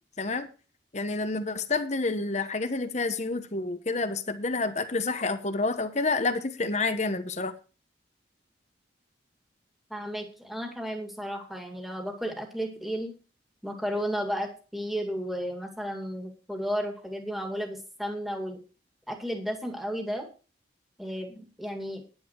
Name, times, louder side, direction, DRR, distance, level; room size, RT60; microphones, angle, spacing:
voice 1, 0.2-0.5 0.9-7.5, left 3 dB, 40° left, 9 dB, 1.1 m, -29 dB
voice 2, 9.9-13.1 13.6-18.6 19.1-20.3 21.0-22.0, equal, ahead, 3 dB, 2.3 m, -33 dB
10.0 x 9.9 x 4.6 m, 0.35 s
head